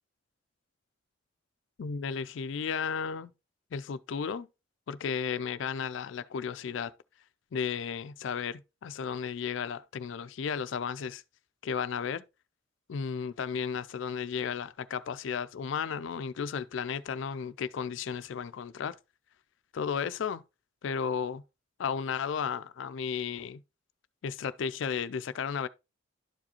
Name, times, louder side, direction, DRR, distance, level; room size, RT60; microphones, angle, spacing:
voice 1, 1.8-3.3 3.7-4.5 4.9-6.9 7.5-11.2 11.6-12.2 12.9-19.0 19.7-20.4 20.8-21.4 21.8-23.6 24.2-25.7, left 6 dB, 70° left, 0.4 m, -34 dB
11.5 x 4.9 x 2.9 m
head